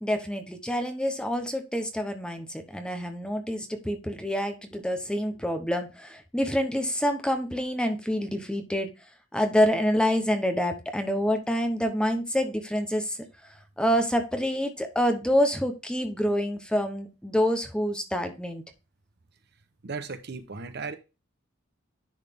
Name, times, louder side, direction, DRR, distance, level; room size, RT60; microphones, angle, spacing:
voice 1, 0.0-8.9 9.3-13.2 13.8-18.6, equal, 5° left, 0.8 m, -27 dB
voice 2, 19.8-21.0, right 4 dB, 55° right, 0.8 m, -36 dB
10.5 x 4.0 x 3.5 m
head